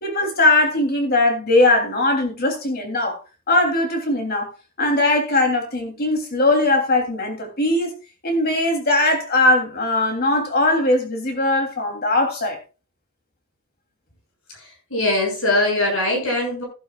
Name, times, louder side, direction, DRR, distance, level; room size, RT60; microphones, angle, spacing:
voice 1, 0.0-3.2 3.5-4.5 4.8-7.9 8.2-12.6, left 2 dB, 45° left, 3.3 m, -20 dB
voice 2, 14.9-16.6, left 2 dB, 75° left, 6.7 m, -21 dB
15.0 x 11.5 x 2.4 m
head